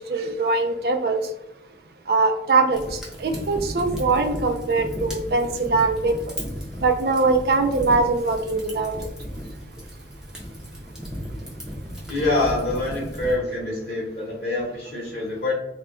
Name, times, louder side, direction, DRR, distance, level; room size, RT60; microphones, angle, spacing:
voice 1, 0.1-1.2 2.1-6.1 6.8-8.9, right 3 dB, 55° right, 0.4 m, -22 dB
Fire, 2.7-13.4, equal, 5° right, 0.5 m, -35 dB
voice 2, 12.1-15.5, left 2 dB, 55° left, 0.7 m, -25 dB
2.2 x 2.2 x 3.6 m
head